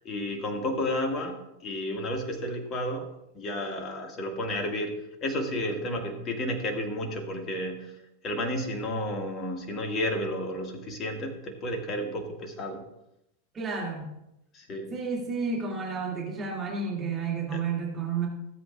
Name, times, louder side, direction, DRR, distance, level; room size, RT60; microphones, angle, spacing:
voice 1, 0.0-3.1 3.3-4.9 5.2-7.9 8.2-12.8 14.5-14.9 17.5-17.6, left 1 dB, 30° left, 3 dB, 2.0 m, -32 dB
voice 2, 13.5-14.1 14.9-18.3, right 5 dB, 20° right, -3 dB, 2.4 m, -31 dB
17.5 x 8.0 x 2.5 m, 0.84 s
figure-of-eight pair, 90°, 0 cm